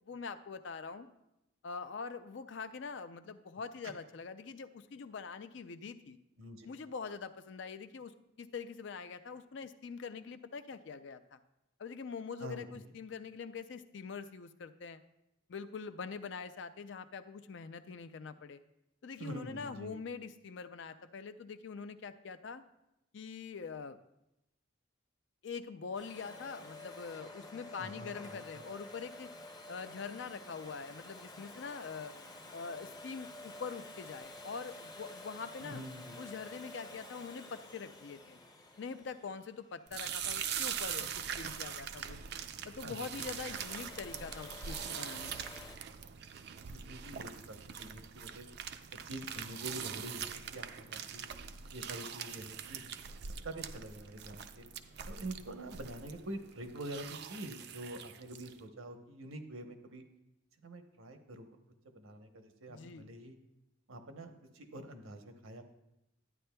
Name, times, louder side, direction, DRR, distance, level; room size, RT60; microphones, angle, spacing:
voice 1, 0.1-1.1 1.6-6.2 6.6-11.4 11.8-15.0 15.5-18.6 19.0-22.6 23.1-24.0 25.4-29.3 29.7-32.1 32.5-35.8 36.2-38.4 38.8-42.2 42.7-45.3 62.7-63.1, left 5 dB, 60° left, 11 dB, 0.4 m, -44 dB
voice 2, 12.4-12.9 19.2-20.0 27.8-28.6 35.6-36.2 42.8-43.1 46.7-48.5 49.0-51.3 51.7-52.9 53.4-54.7 55.1-60.0 60.6-61.5 61.9-63.4 63.9-65.6, right 1 dB, 80° right, 6 dB, 0.9 m, -46 dB
Domestic sounds home sounds, 25.9-40.7 43.0-45.8, left 2 dB, 20° left, 0.6 m, -51 dB
sound 1, 39.9-58.6, right 8 dB, 50° right, 0.4 m, -42 dB
12.0 x 9.4 x 2.2 m, 0.88 s
head